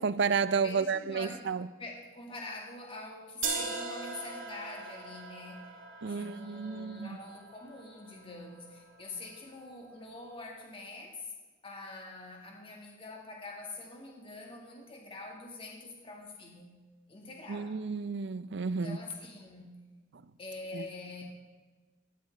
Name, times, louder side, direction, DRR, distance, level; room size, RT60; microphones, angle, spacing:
voice 1, 0.0-1.7 6.0-7.2 17.5-19.0 20.7-20.8, right 5 dB, 65° right, 0.5 m, -31 dB
voice 2, 0.6-1.5 1.8-5.7 6.0-11.3 11.6-16.8 17.1-17.8 18.6-19.8 20.4-21.2, left 3 dB, 30° left, 1.8 m, -45 dB
sound 1, 3.4-9.4, right 4 dB, 80° right, 2.2 m, -41 dB
17.0 x 12.5 x 3.4 m
head